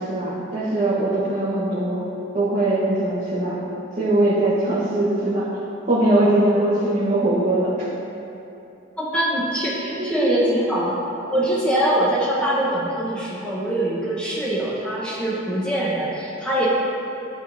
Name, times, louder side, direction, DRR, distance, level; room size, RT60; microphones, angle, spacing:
voice 1, 0.0-2.0 2.3-3.6 4.0-5.5 5.8-7.7 9.9-10.5, right 1 dB, 35° right, -11 dB, 1.0 m, -21 dB
voice 2, 9.0-11.0 11.3-16.7, right 1 dB, 5° left, -7 dB, 0.9 m, -23 dB
10.5 x 3.6 x 2.6 m, 2.9 s
head